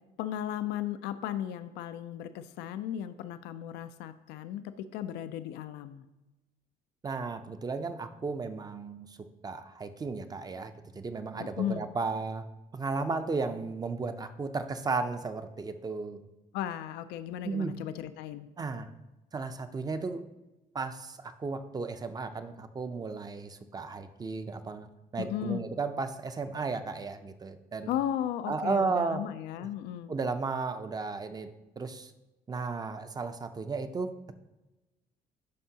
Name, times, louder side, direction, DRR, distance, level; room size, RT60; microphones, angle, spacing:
voice 1, 0.2-6.0 11.4-11.9 16.5-18.5 25.2-25.7 27.9-30.2, left 11 dB, 85° left, 11 dB, 0.4 m, -35 dB
voice 2, 7.0-9.1 9.4-12.4 12.7-16.2 17.4-17.7 18.6-18.9 19.3-20.3 20.7-24.9 25.1-27.9 28.5-29.2 30.1-31.5 31.8-32.1 32.5-34.3, right 4 dB, 25° right, 9 dB, 0.5 m, -34 dB
11.5 x 4.5 x 2.8 m, 1.0 s
cardioid pair, 110°, 17 cm